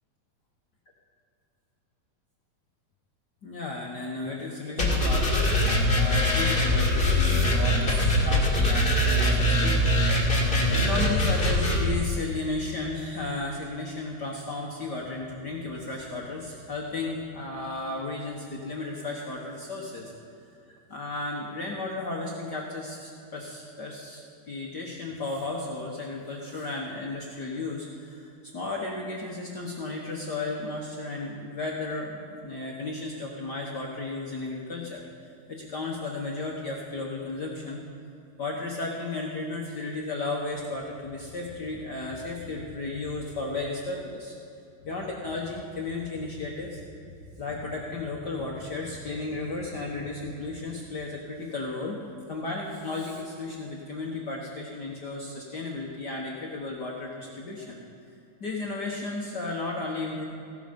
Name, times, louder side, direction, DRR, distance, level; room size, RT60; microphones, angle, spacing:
voice 1, 3.4-10.4 10.7-20.1 20.7-24.2 24.5-35.0 35.5-37.8 38.4-44.3 44.8-46.8 47.4-52.0 52.3-57.8 58.4-60.2, left 3 dB, 55° left, -2 dB, 1.2 m, -34 dB
sound 1, 4.8-11.8, left 1 dB, 20° left, 1.9 m, -22 dB
16.5 x 12.0 x 5.3 m, 2.6 s
omnidirectional pair, 3.5 m